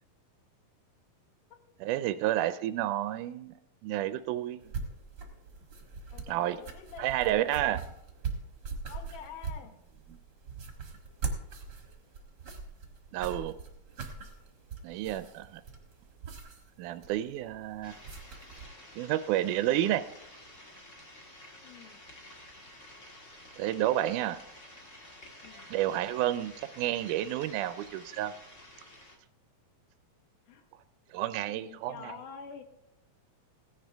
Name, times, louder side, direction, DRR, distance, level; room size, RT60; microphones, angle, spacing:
voice 1, 1.8-3.5 3.8-4.6 6.3-6.6 7.0-7.8 13.1-13.6 14.8-15.6 16.8-17.9 19.0-20.0 23.6-24.4 25.7-28.3 31.1-32.2, right 13 dB, 80° right, 12 dB, 1.9 m, -30 dB
sound 1, 4.6-18.7, right 5 dB, 45° right, 1.4 m, -41 dB
voice 2, 6.1-7.1 7.4-7.7 8.9-9.8 21.6-22.0 25.4-25.7 30.5-30.7 31.4-32.6, left 7 dB, 75° left, 6 dB, 2.5 m, -47 dB
sound 2, 17.8-29.2, left 1 dB, 35° left, 1.2 m, -51 dB
16.0 x 10.5 x 3.4 m, 0.80 s
omnidirectional pair, 3.9 m